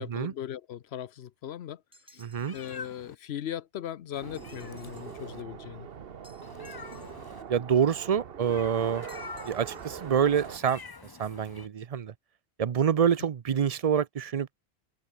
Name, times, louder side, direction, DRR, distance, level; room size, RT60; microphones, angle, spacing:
voice 1, 0.0-1.8 2.1-2.2 2.5-5.9, left 10 dB, 75° left, 1.0 m, -38 dB
sound 1, 1.9-2.9 4.3-5.2 6.2-7.4 9.1-10.1, equal, 5° right, 5.9 m, -60 dB
voice 2, 2.2-2.6 7.5-9.0 9.4-10.8 11.2-12.1 12.6-14.5, right 8 dB, 45° right, 0.5 m, -26 dB
Meow, 2.3-3.1 4.1-5.4 6.4-7.4 8.4-11.7, left 4 dB, 25° left, 0.6 m, -46 dB
sound 2, 4.2-10.6, right 7 dB, 65° right, 1.2 m, -43 dB
omnidirectional pair, 1.1 m